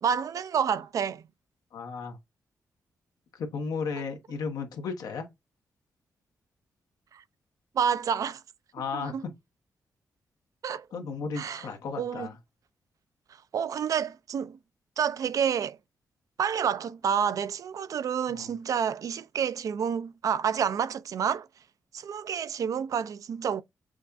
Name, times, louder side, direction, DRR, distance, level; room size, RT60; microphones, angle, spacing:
voice 1, 0.0-1.2 7.1-7.2 7.7-8.4 8.9-9.2 10.6-10.9 11.4-11.6 12.0-12.3 13.5-14.6 15.0-15.8 16.4-21.5 21.9-23.6, right 7 dB, 65° right, 0.4 m, -29 dB
voice 2, 1.7-2.2 3.3-5.3 8.7-9.3 10.9-12.4 18.3-18.5, left 5 dB, 85° left, 1.1 m, -34 dB
6.2 x 2.3 x 2.5 m
cardioid pair, 80°, 6 cm